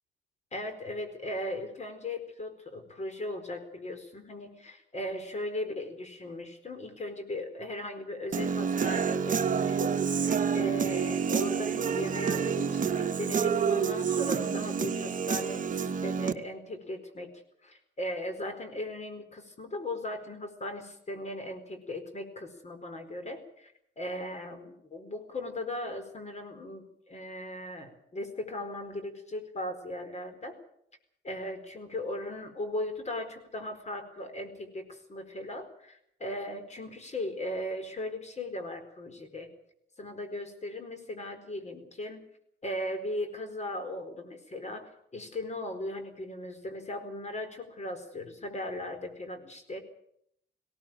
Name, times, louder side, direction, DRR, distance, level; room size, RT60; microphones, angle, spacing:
voice 1, 0.5-17.3 17.6-30.6 31.2-39.5 40.0-42.2 42.6-49.8, left 1 dB, 35° left, 8 dB, 4.5 m, -38 dB
Human voice / Guitar, 8.3-16.3, right 6 dB, 40° right, 1.3 m, -28 dB
19.0 x 17.5 x 9.1 m, 0.72 s
cardioid pair, 90°, 20 cm